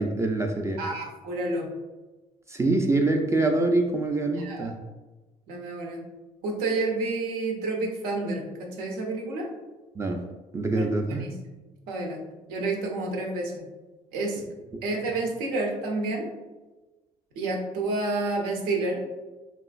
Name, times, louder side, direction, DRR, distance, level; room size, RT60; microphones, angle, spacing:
voice 1, 0.0-0.8 2.5-4.7 10.0-10.3 10.5-11.3, right 2 dB, 20° right, 3 dB, 0.3 m, -25 dB
voice 2, 0.8-1.7 4.4-4.7 5.5-6.0 6.4-9.5 10.7-11.4 11.9-12.2 12.5-13.6 14.1-14.4 14.8-16.3 17.4-19.0, right 2 dB, 80° right, 0 dB, 0.7 m, -29 dB
3.0 x 2.4 x 2.4 m, 1.2 s
supercardioid pair, 75°, 15 cm